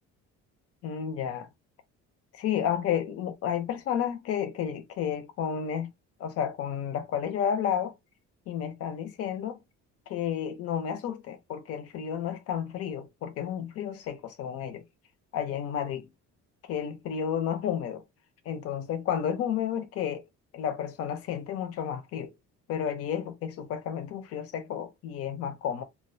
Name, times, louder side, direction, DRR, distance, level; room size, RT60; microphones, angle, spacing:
voice 1, 0.8-1.5 2.4-5.9 6.2-7.9 8.5-9.6 10.1-14.8 15.3-16.1 16.7-18.0 18.5-20.2 20.5-22.3 22.7-25.8, left 8 dB, 50° left, 0.5 m, -31 dB
2.3 x 2.1 x 2.5 m
cardioid pair, 170°, 30 cm